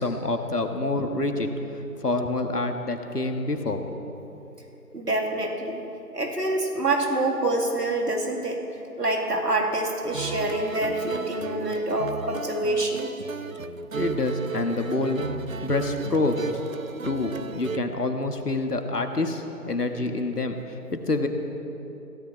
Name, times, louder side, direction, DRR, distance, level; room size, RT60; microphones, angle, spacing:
voice 1, 0.0-1.5 2.0-4.0 13.9-15.3 15.6-16.4 17.0-21.3, left 2 dB, 75° left, 5 dB, 1.6 m, -27 dB
voice 2, 4.9-5.8 6.1-8.6 9.0-13.1, right 2 dB, 75° right, 1 dB, 2.7 m, -26 dB
sound 1, 10.1-17.8, right 5 dB, 60° right, 0.5 m, -34 dB
22.0 x 16.5 x 3.3 m, 3.0 s
figure-of-eight pair, 175°, 48 cm